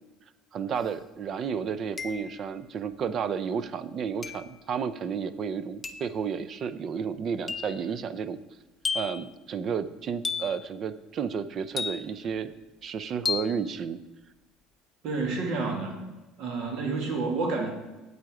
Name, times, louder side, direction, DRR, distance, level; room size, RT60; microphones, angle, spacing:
voice 1, 0.5-8.4 8.9-12.5 12.8-14.0, right 6 dB, 35° right, 14 dB, 0.5 m, -32 dB
sound 1, 0.8-0.9 2.0-2.5 4.2-4.6 5.8-6.2 7.5-7.8 8.8-9.3 10.2-10.7 11.8-12.3 13.3-13.6, left 6 dB, 15° left, 0.5 m, -33 dB
voice 2, 15.0-16.0 16.4-17.7, right 3 dB, 55° right, 3 dB, 2.0 m, -29 dB
9.0 x 8.2 x 4.8 m, 1.1 s
cardioid pair, 155°, 0 cm